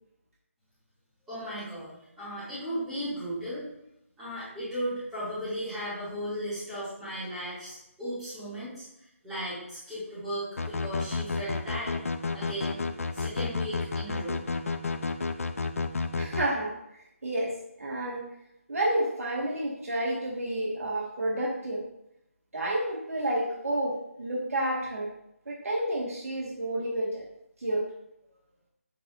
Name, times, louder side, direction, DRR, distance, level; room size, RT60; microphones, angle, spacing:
voice 1, 1.3-3.7 4.2-12.0 12.3-12.8 13.1-14.4, equal, 5° right, -13 dB, 2.3 m, -36 dB
sound 1, 10.6-16.5, left 4 dB, 70° left, 0.6 m, -31 dB
voice 2, 16.2-16.7 17.2-17.5 17.8-18.2 18.7-21.8 22.5-25.1 25.5-27.2 27.6-27.8, right 1 dB, 75° right, -3 dB, 1.7 m, -30 dB
7.7 x 5.7 x 2.5 m, 0.82 s
hypercardioid pair, 175°, 8 cm